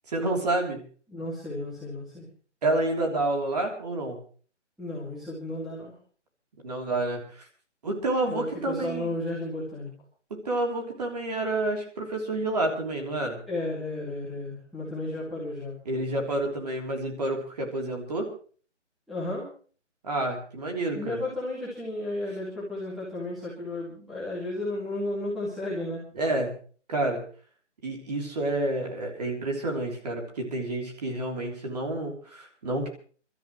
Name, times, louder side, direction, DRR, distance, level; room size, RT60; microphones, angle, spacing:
voice 1, 0.1-0.8 2.6-4.2 6.6-7.4 7.8-9.1 10.3-13.4 15.8-18.3 20.0-21.2 26.1-26.6 26.9-27.2 27.8-32.9, right 2 dB, 35° right, 1 dB, 3.4 m, -29 dB
voice 2, 1.1-2.3 4.8-6.0 8.3-9.9 13.5-15.7 19.1-19.5 20.9-26.0, left 1 dB, ahead, -10 dB, 2.2 m, -33 dB
28.5 x 13.0 x 3.2 m, 0.42 s
hypercardioid pair, 175°, 36 cm